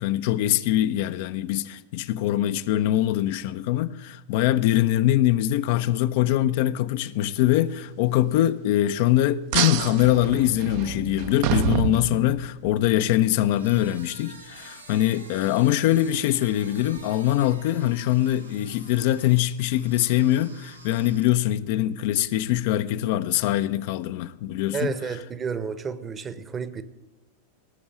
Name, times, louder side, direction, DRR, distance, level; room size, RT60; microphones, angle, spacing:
voice 1, 0.0-24.9, left 13 dB, 50° left, 0.6 m, -23 dB
sound 1, 9.5-12.7, right 10 dB, 45° right, 0.8 m, -27 dB
sound 2, 13.4-21.6, right 3 dB, 80° right, 1.7 m, -48 dB
voice 2, 24.7-26.8, right 6 dB, 20° right, 1.0 m, -31 dB
18.0 x 7.0 x 8.8 m
figure-of-eight pair, 90°, 0 cm